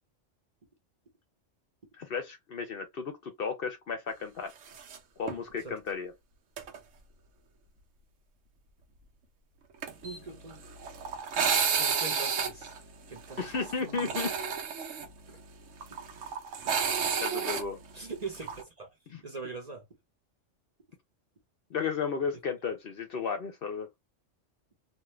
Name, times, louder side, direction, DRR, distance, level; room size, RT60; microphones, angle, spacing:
voice 1, 2.0-4.5 5.2-6.1 13.4-14.3 17.2-17.8 19.1-19.2 21.7-23.9, left 5 dB, 55° left, 0.7 m, -34 dB
sound 1, 4.7-5.0 5.3-5.4 6.6-6.8 9.8-18.6, right 6 dB, 80° right, 1.1 m, -31 dB
voice 2, 10.0-10.7 11.8-12.8 13.1-13.5 13.8-14.2 15.3-15.4 17.9-19.0 19.2-19.9, right 4 dB, 40° right, 0.8 m, -42 dB
2.6 x 2.4 x 3.1 m
omnidirectional pair, 1.3 m